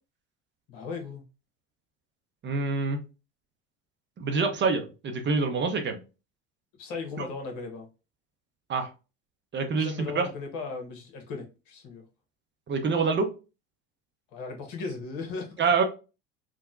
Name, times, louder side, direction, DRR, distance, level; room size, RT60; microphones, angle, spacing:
voice 1, 0.7-1.2 6.8-7.9 9.8-12.0 14.3-15.7, left 4 dB, 60° left, 1.2 m, -37 dB
voice 2, 2.4-3.0 4.2-6.0 8.7-8.9 9.5-10.3 12.7-13.3 15.6-15.8, right 4 dB, 30° right, 0.7 m, -26 dB
3.7 x 2.1 x 2.4 m
hypercardioid pair, 75°, 38 cm